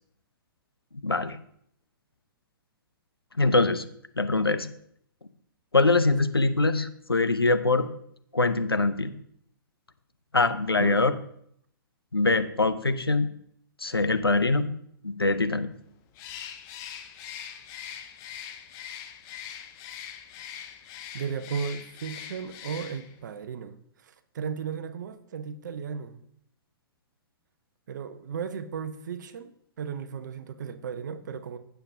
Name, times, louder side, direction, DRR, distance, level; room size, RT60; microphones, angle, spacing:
voice 1, 1.0-1.4 3.4-3.8 4.2-4.7 5.7-7.9 8.3-9.1 10.3-11.2 12.1-13.3 13.8-14.7 15.0-15.7, left 3 dB, 85° left, 11 dB, 0.7 m, -23 dB
Bird, 16.1-23.2, left 9 dB, 30° left, 0.9 m, -42 dB
voice 2, 21.1-26.2 27.9-31.6, right 6 dB, 50° right, 11 dB, 0.8 m, -35 dB
15.5 x 7.0 x 2.7 m, 0.68 s
figure-of-eight pair, 115°, 12 cm